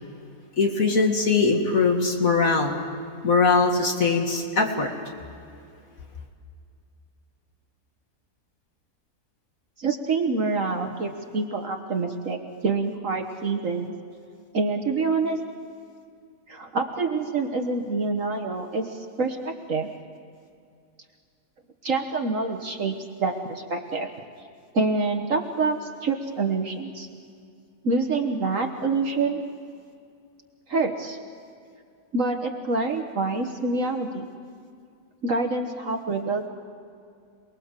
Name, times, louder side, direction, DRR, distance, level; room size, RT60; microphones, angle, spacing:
voice 1, 0.6-2.8 3.2-4.9, left 4 dB, 60° left, 1 dB, 2.5 m, -21 dB
voice 2, 9.8-13.9 14.5-15.4 16.5-19.9 21.8-24.1 24.7-27.1 27.8-29.4 30.7-31.2 32.1-34.3 35.2-36.5, right 3 dB, 55° right, 3 dB, 1.6 m, -26 dB
28.0 x 20.5 x 7.5 m, 2.3 s
omnidirectional pair, 1.7 m